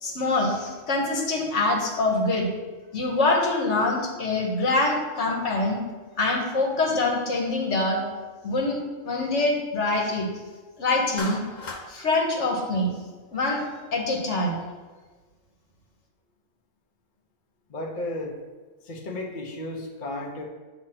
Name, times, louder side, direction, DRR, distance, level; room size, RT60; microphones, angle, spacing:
voice 1, 0.0-2.5 2.9-5.8 6.2-8.0 8.4-8.8 9.0-10.3 10.8-11.4 11.9-12.9 13.3-13.6 13.9-14.6, left 2 dB, 70° left, 1 dB, 1.4 m, -24 dB
Clapping, 11.2-11.9, left 3 dB, 90° left, 1.3 m, -35 dB
voice 2, 17.7-18.3 18.8-20.4, left 1 dB, 45° left, 0 dB, 0.8 m, -33 dB
7.6 x 2.9 x 5.8 m, 1.4 s
omnidirectional pair, 1.3 m